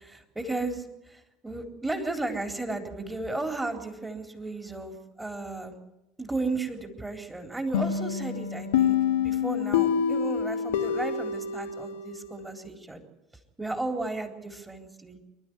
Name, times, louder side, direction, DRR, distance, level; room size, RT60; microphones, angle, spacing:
voice 1, 0.0-5.7 6.2-13.0 13.6-15.2, right 2 dB, 10° right, 5 dB, 3.8 m, -34 dB
sound 1, 7.7-12.4, left 8 dB, 65° left, 1.4 m, -27 dB
26.5 x 12.5 x 9.8 m, 0.94 s
figure-of-eight pair, 70°, 0 cm